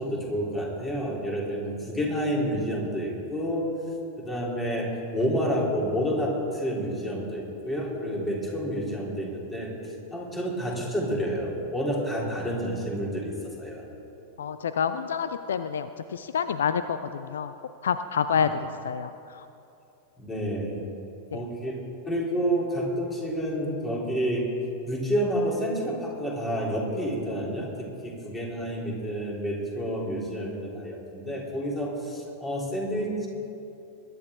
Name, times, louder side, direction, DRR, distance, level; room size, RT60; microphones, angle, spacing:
voice 1, 0.0-3.7 4.3-13.8 20.2-20.8 21.3-24.5 24.9-33.3, equal, 15° left, -3 dB, 3.2 m, -29 dB
voice 2, 14.4-17.5 17.8-18.6 18.8-19.4, left 7 dB, 65° left, 11 dB, 0.4 m, -28 dB
21.5 x 11.0 x 3.6 m, 2.7 s
figure-of-eight pair, 90°, 0 cm